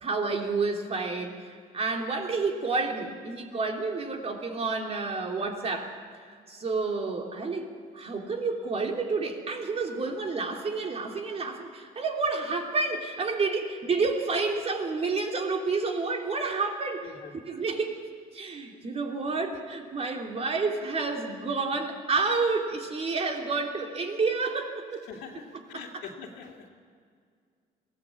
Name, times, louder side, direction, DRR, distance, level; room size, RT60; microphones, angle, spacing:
voice 1, 0.0-5.9 6.5-17.1 17.5-18.0 18.3-25.0 25.5-26.1, right 4 dB, 35° right, 3 dB, 3.1 m, -30 dB
voice 2, 25.1-26.7, left 6 dB, 85° left, 1 dB, 2.7 m, -43 dB
22.0 x 16.5 x 8.6 m, 2.1 s
cardioid pair, 110°, 17 cm